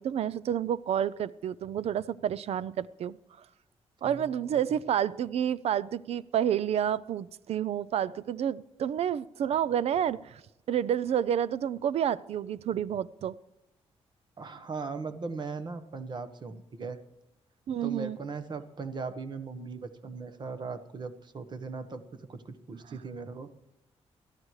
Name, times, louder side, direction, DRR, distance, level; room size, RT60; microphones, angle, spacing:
voice 1, 0.0-3.2 4.0-10.4 10.7-13.4 17.7-18.2 22.9-23.0, right 9 dB, 70° right, 19 dB, 0.5 m, -29 dB
voice 2, 14.4-17.0 17.8-23.5, right 4 dB, 45° right, 11 dB, 1.2 m, -39 dB
22.0 x 14.0 x 3.2 m, 0.88 s
cardioid pair, 125°, 11 cm